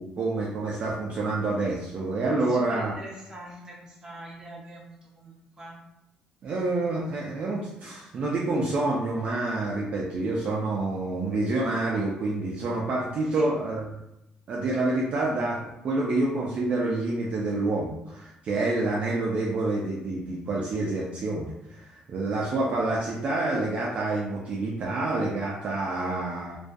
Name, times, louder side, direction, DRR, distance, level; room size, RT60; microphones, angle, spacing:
voice 1, 0.0-2.9 6.4-13.8 14.5-26.6, right 2 dB, 50° right, -4 dB, 0.4 m, -28 dB
voice 2, 2.3-5.8 13.3-13.5, right 1 dB, 25° right, -4 dB, 0.7 m, -43 dB
2.3 x 2.2 x 2.5 m, 0.86 s
cardioid pair, 130°, 3 cm